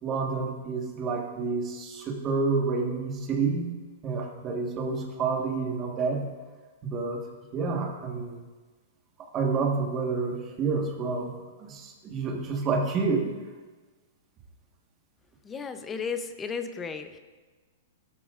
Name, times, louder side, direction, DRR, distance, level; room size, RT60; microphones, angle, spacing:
voice 1, 0.0-3.7 4.0-6.3 6.8-7.3 7.5-8.4 9.2-11.3 11.6-13.3, right 4 dB, 20° right, 1 dB, 1.4 m, -29 dB
voice 2, 15.4-17.2, left 5 dB, 10° left, 8 dB, 0.6 m, -34 dB
17.5 x 12.5 x 2.5 m, 1.3 s
supercardioid pair, 170°, 0 cm